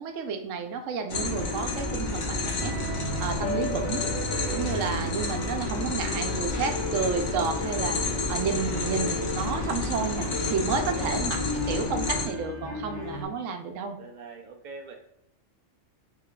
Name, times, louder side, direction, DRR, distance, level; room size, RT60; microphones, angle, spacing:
voice 1, 0.0-4.1 4.5-11.4 11.7-14.0, right 5 dB, 80° right, 5 dB, 0.9 m, -31 dB
sound 1, 1.1-12.3, left 3 dB, 70° left, 1.0 m, -30 dB
sound 2, 2.6-13.2, left 2 dB, 85° left, 1.6 m, -35 dB
voice 2, 10.6-11.2 13.0-13.3 14.0-14.9, right 4 dB, 65° right, 2 dB, 0.5 m, -44 dB
3.4 x 2.3 x 3.6 m, 0.76 s
omnidirectional pair, 1.3 m